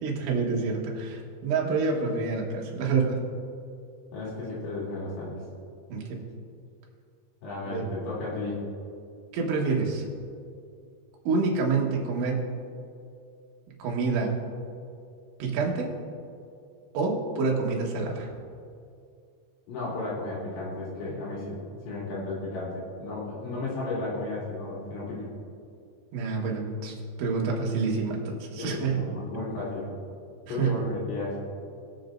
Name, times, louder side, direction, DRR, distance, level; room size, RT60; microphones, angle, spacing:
voice 1, 0.0-3.2 5.9-6.2 7.6-7.8 9.3-10.0 11.3-12.5 13.8-14.4 15.4-16.0 16.9-18.3 26.1-29.0 30.5-30.8, right 4 dB, 75° right, -1 dB, 3.7 m, -27 dB
voice 2, 4.1-5.4 7.4-8.6 19.7-25.3 28.6-29.9 30.5-31.4, left 2 dB, 75° left, -8 dB, 5.1 m, -34 dB
21.5 x 7.3 x 2.6 m, 2.4 s
omnidirectional pair, 5.5 m